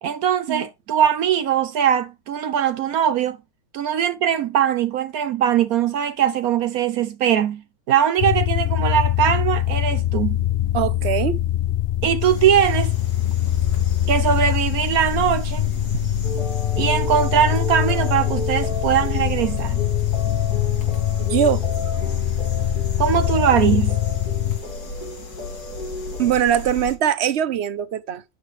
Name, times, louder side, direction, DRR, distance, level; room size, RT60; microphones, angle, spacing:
voice 1, 0.0-3.4 3.7-7.6 7.9-10.4 12.0-12.9 14.1-15.7 16.8-19.8 23.0-24.0, right 9 dB, 70° right, 1.2 m, -21 dB
sound 1, 8.2-24.6, left 12 dB, 65° left, 0.6 m, -23 dB
voice 2, 10.7-11.4 15.9-16.1 21.2-21.7 26.2-28.2, right 9 dB, 50° right, 0.9 m, -22 dB
sound 2, 12.2-27.0, left 2 dB, 90° left, 2.7 m, -36 dB
sound 3, 16.2-26.4, left 1 dB, 30° left, 2.0 m, -34 dB
9.6 x 8.4 x 3.2 m
omnidirectional pair, 1.6 m